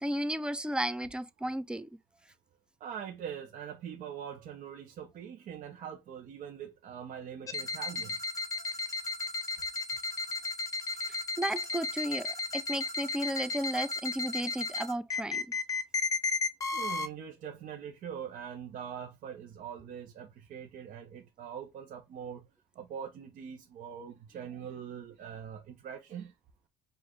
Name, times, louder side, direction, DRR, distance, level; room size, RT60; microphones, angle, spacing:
voice 1, 0.0-1.9 11.4-15.5, right 1 dB, 5° right, 0.4 m, -34 dB
voice 2, 2.8-8.2 16.7-22.5 22.7-26.3, right 8 dB, 55° right, 0.8 m, -43 dB
sound 1, 7.5-17.1, left 4 dB, 20° left, 0.9 m, -34 dB
4.8 x 2.5 x 3.7 m
cardioid pair, 110°, 16 cm